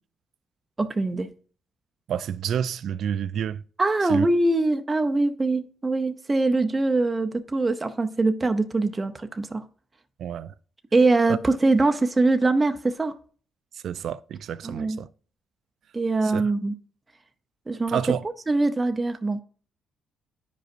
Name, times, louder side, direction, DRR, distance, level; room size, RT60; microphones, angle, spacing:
voice 1, 0.8-1.3 3.8-9.6 10.9-13.1 14.6-15.0 15.9-16.7 17.7-18.0 18.5-19.4, right 2 dB, 20° right, 0.6 m, -23 dB
voice 2, 2.1-3.6 4.1-4.3 10.2-10.5 11.3-11.4 13.8-15.1 16.2-16.5 17.9-18.3, right 9 dB, 65° right, 0.3 m, -29 dB
10.5 x 5.1 x 2.5 m
cardioid pair, 90°, 0 cm